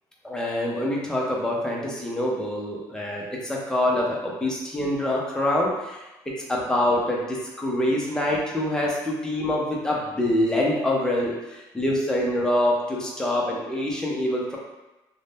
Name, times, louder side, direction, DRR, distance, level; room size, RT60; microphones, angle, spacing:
voice 1, 0.2-6.0 6.5-14.6, left 1 dB, 10° left, -3 dB, 0.6 m, -25 dB
2.5 x 2.1 x 3.5 m, 1.0 s
cardioid pair, 110°, 9 cm